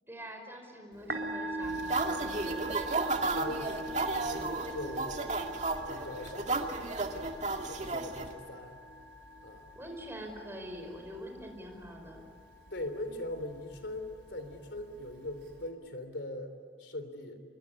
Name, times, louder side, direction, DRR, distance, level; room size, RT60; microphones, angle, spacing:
voice 1, 0.1-2.7 9.7-12.2, equal, 15° right, 3 dB, 5.1 m, -45 dB
Musical instrument, 0.9-15.7, right 1 dB, 90° right, 3.9 m, -43 dB
sound 1, 1.6-8.3, right 3 dB, 45° right, 2.2 m, -33 dB
voice 2, 3.3-5.5 5.9-7.3 7.6-8.8 9.4-9.7 12.7-17.4, left 1 dB, 85° left, 9 dB, 3.5 m, -41 dB
26.0 x 23.0 x 9.8 m, 2.2 s
head